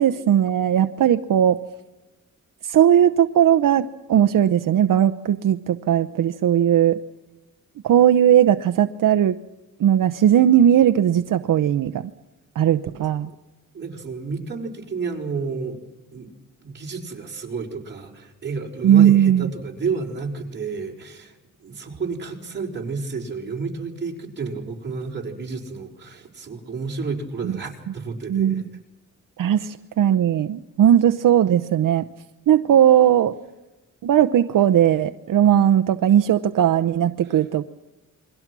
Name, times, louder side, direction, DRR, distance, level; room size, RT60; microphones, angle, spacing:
voice 1, 0.0-1.6 2.6-7.0 7.8-9.4 9.8-12.1 12.5-13.3 18.8-19.5 28.3-28.6 29.4-32.1 32.5-33.4 34.0-37.7, right 10 dB, 75° right, 9 dB, 0.8 m, -18 dB
voice 2, 12.8-13.3 13.7-15.8 16.1-16.3 16.6-28.6 37.3-37.4, right 4 dB, 35° right, -1 dB, 4.7 m, -31 dB
29.0 x 23.0 x 6.1 m, 1.0 s
wide cardioid pair, 155°, 33 cm